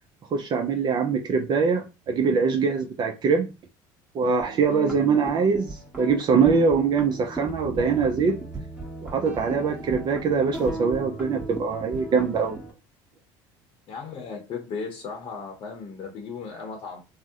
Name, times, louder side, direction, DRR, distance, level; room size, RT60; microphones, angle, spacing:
voice 1, 0.3-3.5 4.1-8.4 9.0-12.6, right 5 dB, 40° right, 0.5 m, -23 dB
sound 1, 4.4-12.7, right 2 dB, 10° right, 1.3 m, -37 dB
voice 2, 13.9-17.0, left 5 dB, 45° left, 0.8 m, -36 dB
2.7 x 2.0 x 3.5 m
supercardioid pair, 100°, 12 cm